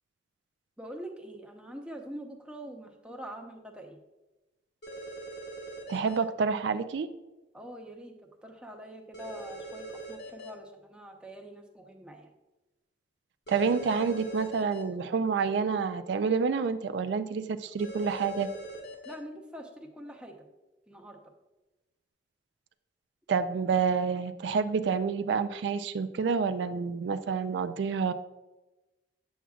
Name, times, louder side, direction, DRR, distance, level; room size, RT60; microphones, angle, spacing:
voice 1, 0.8-4.0 7.5-8.1 8.4-12.3 19.0-20.3 20.9-21.2, equal, 5° right, 2 dB, 0.7 m, -44 dB
sound 1, 4.8-6.2 9.1-10.5 13.5-14.8 17.8-19.1, right 2 dB, 65° left, 1.2 m, -42 dB
voice 2, 5.9-7.1 13.5-18.5 23.3-28.1, right 5 dB, 75° right, 11 dB, 0.3 m, -28 dB
8.1 x 7.2 x 2.4 m, 1.1 s
head